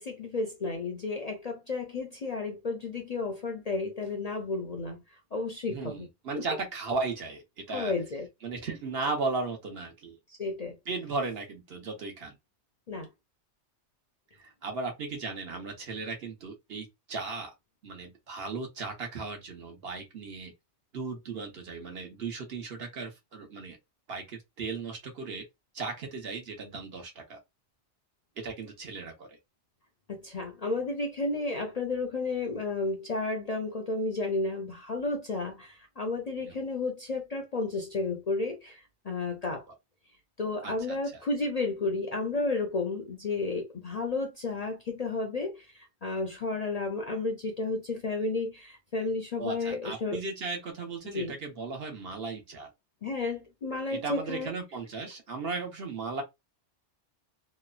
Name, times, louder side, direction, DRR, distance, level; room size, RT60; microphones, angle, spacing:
voice 1, 0.0-6.1 6.3-6.4 7.7-8.3 10.4-10.8 12.9-13.1 30.1-39.6 40.4-50.2 51.0-51.3 53.0-54.5, left 3 dB, 50° left, 0.5 m, -32 dB
voice 2, 5.7-7.9 8.4-10.2 10.9-12.4 14.4-17.5 17.8-20.5 20.9-23.8 24.1-25.4 25.7-27.4 28.4-29.4 36.4-36.6 40.6-41.0 49.4-52.7 53.9-56.2, right 4 dB, 60° right, 1.1 m, -36 dB
3.0 x 2.0 x 2.3 m
omnidirectional pair, 1.2 m